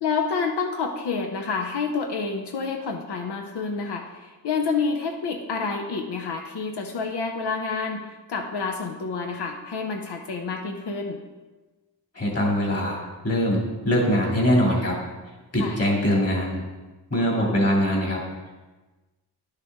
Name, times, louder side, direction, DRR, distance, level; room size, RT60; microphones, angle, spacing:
voice 1, 0.0-11.2 15.6-15.8, left 4 dB, 90° left, 3 dB, 0.8 m, -28 dB
voice 2, 12.1-13.0 13.2-15.0 15.5-16.6 17.1-18.2, equal, 40° left, -2 dB, 2.6 m, -22 dB
11.0 x 6.7 x 3.6 m, 1.2 s
wide cardioid pair, 115°, 40 cm